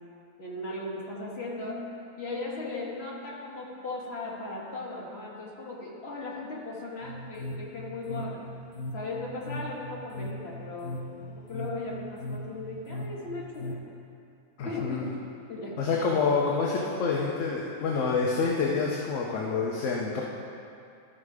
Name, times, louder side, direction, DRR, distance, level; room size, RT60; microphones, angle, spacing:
voice 1, 0.4-1.9 2.2-8.4 8.9-11.0 11.3-13.8 14.6-15.1 15.5-15.8, left 2 dB, 45° left, -4 dB, 1.7 m, -37 dB
sound 1, 7.0-13.8, left 1 dB, 90° left, 1.2 m, -39 dB
voice 2, 14.6-15.1 15.8-20.2, left 4 dB, 65° left, -2 dB, 1.1 m, -27 dB
13.0 x 5.0 x 4.8 m, 2.5 s
omnidirectional pair, 1.5 m